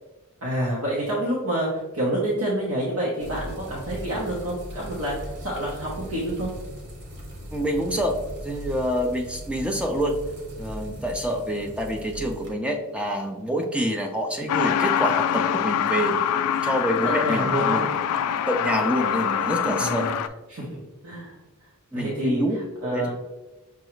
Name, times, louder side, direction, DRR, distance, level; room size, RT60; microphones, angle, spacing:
voice 1, 0.4-6.5 17.2-17.8 19.8-20.1 20.5-20.7 21.0-21.3 21.9-22.4 22.8-23.1, right 1 dB, 80° right, -5 dB, 1.0 m, -28 dB
sound 1, 3.2-12.5, equal, 55° right, 0.9 m, -39 dB
voice 2, 7.5-8.2 8.4-10.1 10.6-16.2 16.6-17.9 18.4-20.1 21.9-22.6 22.8-23.1, equal, 5° right, 2 dB, 0.3 m, -26 dB
Truck, 14.5-20.3, left 9 dB, 90° left, 0.3 m, -24 dB
6.1 x 2.3 x 3.1 m, 1.1 s
head